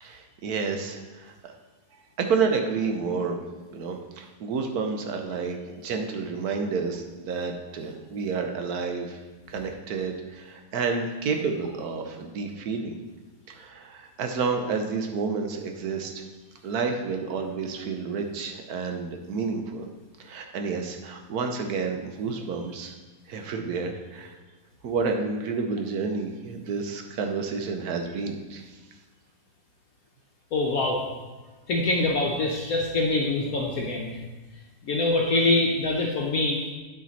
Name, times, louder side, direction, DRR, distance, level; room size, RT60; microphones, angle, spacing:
voice 1, 0.0-1.3 2.2-3.4 3.7-9.2 9.5-12.9 13.5-16.2 16.6-19.9 20.2-22.9 23.3-24.4 24.8-28.7, right 5 dB, 65° right, 4 dB, 1.2 m, -30 dB
voice 2, 30.5-31.0 31.7-34.2 34.8-36.6, left 2 dB, 60° left, -1 dB, 1.2 m, -24 dB
9.0 x 5.1 x 4.1 m, 1.2 s
omnidirectional pair, 1.9 m